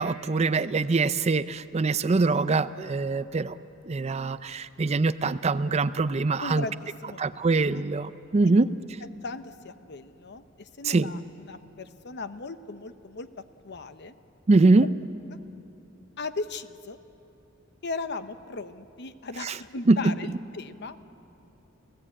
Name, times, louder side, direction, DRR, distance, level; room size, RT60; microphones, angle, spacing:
voice 1, 0.0-3.6 3.9-6.7 7.2-8.7 10.8-11.1 14.5-14.9 19.4-19.6 19.9-20.1, right 3 dB, 30° right, 14 dB, 0.4 m, -23 dB
voice 2, 6.4-7.4 7.7-7.8 8.4-8.6 9.2-13.3 13.6-14.1 14.8-14.9 16.2-17.0 17.8-21.0, left 3 dB, 55° left, 11 dB, 0.9 m, -37 dB
29.0 x 16.5 x 8.6 m, 2.8 s
head